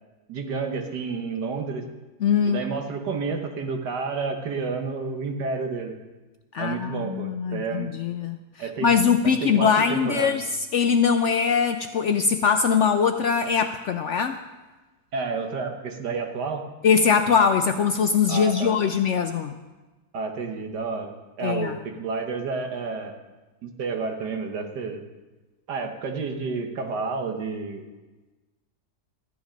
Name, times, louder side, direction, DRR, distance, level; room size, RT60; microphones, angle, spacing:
voice 1, 0.3-1.8 2.5-6.0 6.6-7.9 8.6-8.9 9.2-10.4 15.1-16.7 18.3-18.8 20.1-23.2 23.6-25.0 25.7-27.9, right 4 dB, 90° right, 4 dB, 1.9 m, -30 dB
voice 2, 2.2-2.7 6.5-10.5 10.7-14.4 16.8-19.5 21.4-21.8, left 6 dB, 70° left, 8 dB, 0.7 m, -22 dB
13.5 x 10.0 x 5.2 m, 1.2 s
omnidirectional pair, 1.8 m